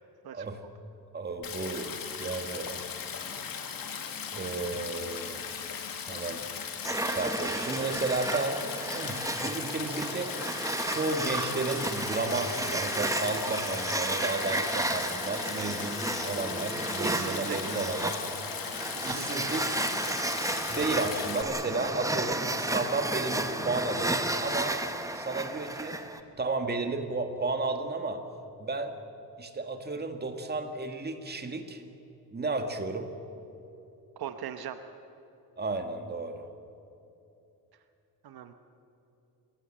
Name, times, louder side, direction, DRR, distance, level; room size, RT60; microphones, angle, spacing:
voice 1, 1.1-2.8 4.3-5.4 6.1-6.4 7.0-10.3 10.8-18.2 19.0-19.8 20.7-24.8 25.1-26.0 26.4-28.2 28.6-28.9 29.4-31.8 32.3-33.1 35.6-36.4, right 3 dB, 25° right, 6 dB, 1.9 m, -33 dB
Stream, 1.4-21.4, left 7 dB, 60° left, 2.2 m, -38 dB
sound 1, 6.8-26.2, right 2 dB, 10° right, 1.1 m, -33 dB
voice 2, 17.0-17.8 18.9-19.3 34.2-34.8 38.2-38.5, right 9 dB, 70° right, 9 dB, 1.2 m, -40 dB
Guitar, 20.7-27.4, left 1 dB, 15° left, 3.6 m, -50 dB
28.5 x 17.0 x 7.5 m, 2.9 s
cardioid pair, 130°, 38 cm